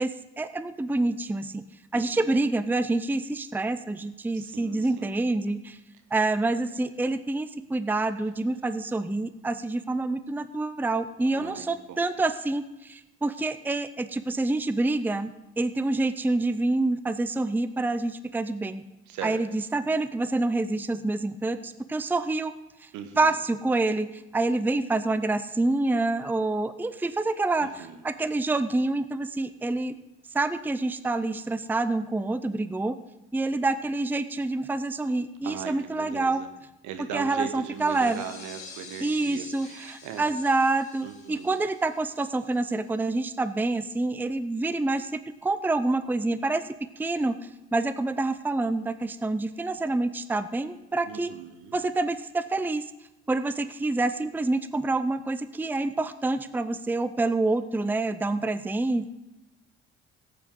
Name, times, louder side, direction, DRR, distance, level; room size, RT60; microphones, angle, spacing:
voice 1, 0.0-1.6 1.9-5.8 6.1-18.8 19.2-22.5 23.2-29.9 30.3-33.0 33.3-36.4 37.1-38.2 39.0-45.1 45.4-46.6 47.0-47.4 47.7-51.3 51.7-52.9 53.3-59.1, right 2 dB, 5° right, 12 dB, 0.6 m, -27 dB
voice 2, 1.9-2.4 4.3-5.2 11.3-12.1 19.1-19.4 22.9-23.3 27.6-28.0 35.4-36.5 36.8-40.3 41.0-41.5 51.0-51.8, right 8 dB, 65° right, 8 dB, 1.3 m, -39 dB
sound 1, 37.7-43.0, left 5 dB, 85° left, 1.6 m, -49 dB
17.5 x 8.5 x 3.8 m, 0.95 s
figure-of-eight pair, 45°, 33 cm